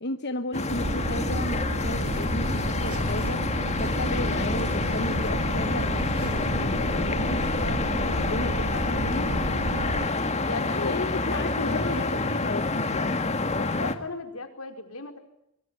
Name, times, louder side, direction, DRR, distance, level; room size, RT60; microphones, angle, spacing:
voice 1, 0.0-3.4 3.8-7.8 8.2-9.4 10.8-13.3, left 2 dB, 50° left, 8 dB, 1.2 m, -34 dB
sound 1, 0.5-13.9, left 3 dB, 30° left, 2.0 m, -28 dB
sound 2, 0.7-10.1, right 1 dB, 70° right, 3.0 m, -31 dB
sound 3, 1.8-7.7, right 4 dB, 85° right, 4.8 m, -49 dB
voice 2, 8.1-9.1 9.7-10.1 10.4-12.2 13.5-15.2, left 3 dB, 75° left, 6 dB, 4.9 m, -37 dB
25.0 x 24.0 x 8.9 m, 0.76 s
head